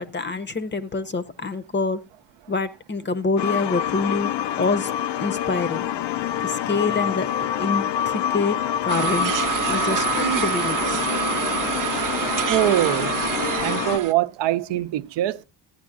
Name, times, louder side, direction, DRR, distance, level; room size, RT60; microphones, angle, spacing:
voice 1, 0.0-2.0 2.5-4.3 4.6-4.9 5.2-5.9 6.4-7.3 7.6-9.3 9.7-11.0, left 3 dB, 25° left, 0.6 m, -26 dB
sound 1, 3.4-14.0, left 10 dB, 85° left, 0.5 m, -26 dB
sound 2, 8.9-14.1, right 9 dB, 50° right, 0.6 m, -26 dB
voice 2, 12.5-13.1 13.6-15.4, right 14 dB, 90° right, 0.5 m, -23 dB
14.5 x 9.3 x 2.5 m
cardioid pair, 90°, 42 cm